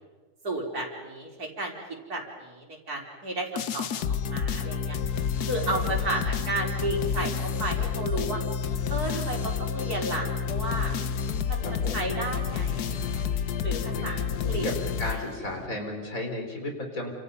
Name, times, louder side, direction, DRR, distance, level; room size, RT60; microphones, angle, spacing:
voice 1, 0.4-1.7 2.1-3.9 4.3-8.4 8.9-10.9 11.5-13.2 13.6-14.7 15.1-15.2, right 2 dB, 75° right, -1 dB, 4.9 m, -33 dB
sound 1, 3.6-15.7, left 7 dB, 85° left, 1.5 m, -29 dB
voice 2, 5.5-6.5 11.6-12.1 13.9-14.1 14.3-14.7 15.0-17.1, left 1 dB, 60° left, 2 dB, 4.6 m, -35 dB
29.0 x 27.0 x 5.5 m, 1.3 s
omnidirectional pair, 1.6 m